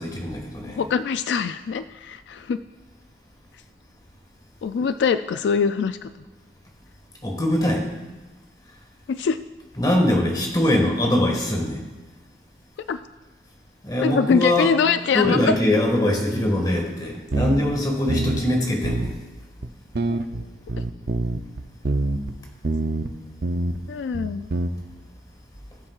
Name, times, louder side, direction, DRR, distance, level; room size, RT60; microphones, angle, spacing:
voice 1, 0.0-0.9 7.2-7.8 9.7-11.8 13.8-14.7 15.1-19.1, left 1 dB, 20° left, 1 dB, 1.7 m, -22 dB
voice 2, 0.8-2.6 4.6-6.1 9.1-9.4 12.9-13.0 14.0-15.5 20.1-20.2 23.9-24.5, left 6 dB, 75° left, 11 dB, 0.3 m, -23 dB
sound 1, 17.3-17.8 18.1-18.5 18.8-19.1 19.6-19.7 19.9-22.4 22.6-23.1 23.4-23.8 24.1-24.7, right 2 dB, 60° right, 0.6 m, -25 dB
18.5 x 7.4 x 2.4 m, 1.2 s
head